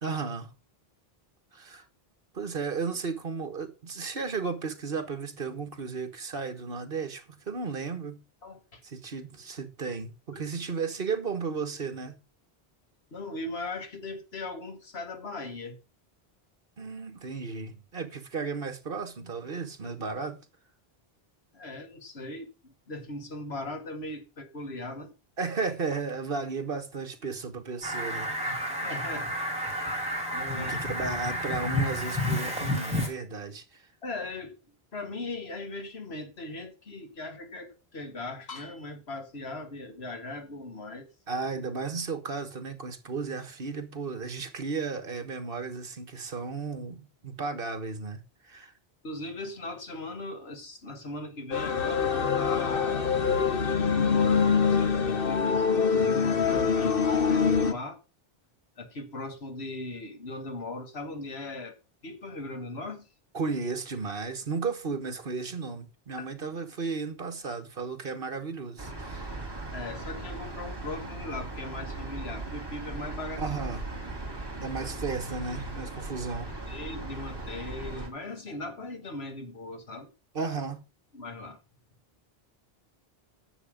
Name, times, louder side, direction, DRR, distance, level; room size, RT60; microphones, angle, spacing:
voice 1, 0.0-0.5 1.5-1.8 2.3-8.2 8.8-12.2 16.8-20.4 25.4-28.3 30.5-33.8 41.3-48.7 63.3-69.3 73.4-73.8 74.6-76.5 80.3-80.8, right 4 dB, 65° right, 1.6 m, -34 dB
voice 2, 8.4-8.8 10.3-10.4 13.1-15.8 21.5-25.1 28.4-29.3 30.3-30.7 34.0-34.6 34.9-41.1 49.0-53.1 53.9-58.0 58.8-61.8 62.0-63.1 66.2-66.3 69.7-73.4 76.7-80.1 81.1-81.6, left 2 dB, 85° left, 1.9 m, -39 dB
Fowl, 27.8-33.1, left 1 dB, 5° right, 3.7 m, -30 dB
sound 1, 51.5-57.7, left 6 dB, 60° left, 1.3 m, -24 dB
sound 2, 68.8-78.1, right 2 dB, 25° right, 2.5 m, -38 dB
9.8 x 7.1 x 5.0 m
omnidirectional pair, 1.0 m